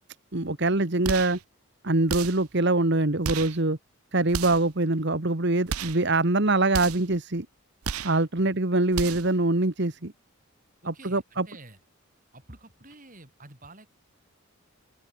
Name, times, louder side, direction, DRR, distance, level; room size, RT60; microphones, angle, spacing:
voice 1, 0.3-1.4 1.8-3.8 4.1-7.5 8.0-10.1 10.9-11.5, right 2 dB, 55° right, 1.6 m, -24 dB
sound 1, 1.0-1.4 2.1-2.5 3.2-3.6 4.3-4.7 5.7-6.1 6.7-7.1 7.8-8.2 8.9-9.4, right 7 dB, 85° right, 0.7 m, -33 dB
voice 2, 10.8-11.8 12.3-13.9, right 2 dB, 40° right, 7.5 m, -49 dB
open air
head